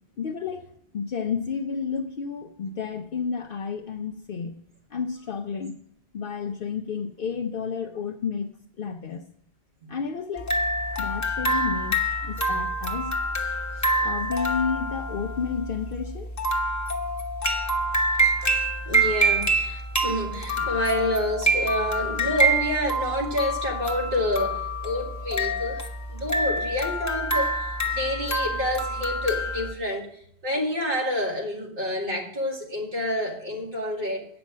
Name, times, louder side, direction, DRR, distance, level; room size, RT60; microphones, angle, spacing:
voice 1, 0.2-0.7 0.9-4.6 4.9-5.8 6.1-8.5 8.8-9.2 9.9-10.5 11.0-12.0 12.2-13.2 14.0-16.3, left 6 dB, 60° left, 4 dB, 0.8 m, -31 dB
sound 1, 10.4-29.7, right 1 dB, 15° left, 1.0 m, -26 dB
voice 2, 18.9-25.8 26.1-27.7 27.9-30.1 30.4-34.3, left 1 dB, 55° right, 0 dB, 2.1 m, -28 dB
8.7 x 6.0 x 7.2 m, 0.67 s
omnidirectional pair, 1.1 m